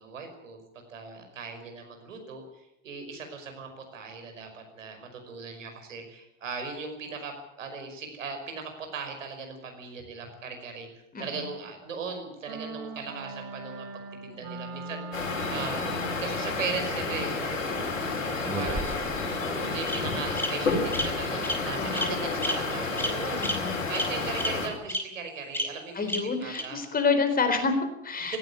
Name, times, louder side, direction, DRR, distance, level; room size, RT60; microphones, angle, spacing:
voice 1, 0.0-10.9 11.2-17.9 18.4-19.0 19.7-26.1 26.4-26.8 28.2-28.4, right 5 dB, 75° right, 5 dB, 5.5 m, -38 dB
sound 1, 12.5-16.3, right 3 dB, 45° right, 3.4 m, -40 dB
sound 2, 15.1-24.7, left 3 dB, 80° left, 5.2 m, -30 dB
Bird vocalization bird call bird song, 18.4-19.2 19.9-20.0 20.4-20.5 20.9-21.0 21.4-21.6 21.9-22.1 22.4-22.5 23.0-23.1 23.4-23.5 23.9-24.0 24.4-24.5 24.9-25.0 25.5-25.6 26.1-26.2 26.5-26.6, left 1 dB, 5° left, 4.6 m, -29 dB
voice 2, 21.8-22.5 23.4-23.8 25.9-28.4, left 4 dB, 25° left, 8 dB, 4.1 m, -28 dB
18.0 x 16.0 x 9.8 m, 0.83 s
figure-of-eight pair, 80°, 38 cm